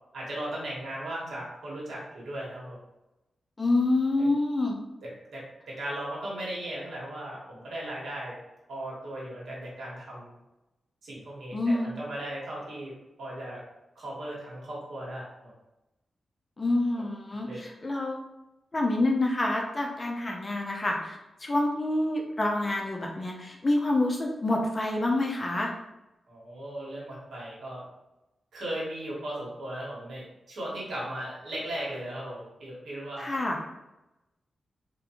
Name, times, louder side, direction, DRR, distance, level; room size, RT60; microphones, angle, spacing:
voice 1, 0.1-2.8 4.2-4.3 5.0-8.3 8.7-10.3 11.0-12.9 13.2-13.6 13.9-15.5 17.0-17.1 17.4-17.6 26.3-27.8 28.5-33.3, right 1 dB, 75° right, -5 dB, 1.3 m, -37 dB
voice 2, 3.6-4.8 11.5-11.9 16.6-18.2 18.7-25.7 33.2-33.6, left 2 dB, 25° left, 0 dB, 0.5 m, -27 dB
3.5 x 2.5 x 2.9 m, 0.96 s
wide cardioid pair, 150°, 0 cm